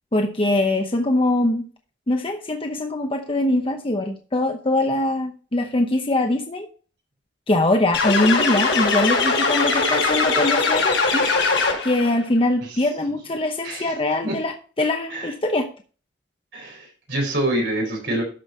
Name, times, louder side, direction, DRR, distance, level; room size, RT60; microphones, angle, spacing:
voice 1, 0.1-1.7 2.1-6.7 7.5-11.3 11.5-15.7, left 1 dB, 30° left, 4 dB, 0.8 m, -22 dB
sound 1, 7.9-12.1, left 4 dB, 90° left, 4.9 m, -20 dB
voice 2, 16.5-18.2, right 1 dB, 65° right, 1 dB, 4.3 m, -26 dB
13.0 x 5.4 x 4.3 m, 0.39 s
head